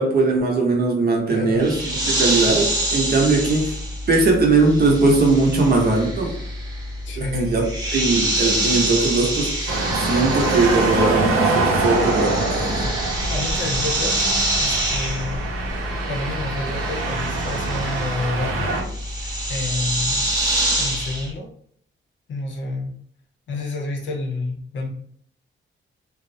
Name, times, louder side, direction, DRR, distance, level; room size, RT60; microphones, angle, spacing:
voice 1, 0.0-1.8 2.0-3.7 4.1-6.3 7.2-7.7 7.9-9.5 9.9-12.9, right 3 dB, 50° right, -1 dB, 0.7 m, -19 dB
voice 2, 1.1-1.7 7.0-7.6 13.3-14.2 14.6-15.4 16.0-20.2 20.8-21.5 22.3-22.9 23.5-24.9, left 2 dB, 65° left, 0 dB, 0.6 m, -29 dB
sound 1, 1.6-11.3 11.6-21.3, right 1 dB, 20° right, 0.7 m, -26 dB
sound 2, 9.7-18.8, right 3 dB, 90° right, 0.6 m, -24 dB
2.4 x 2.0 x 2.6 m, 0.63 s
cardioid pair, 120°, 21 cm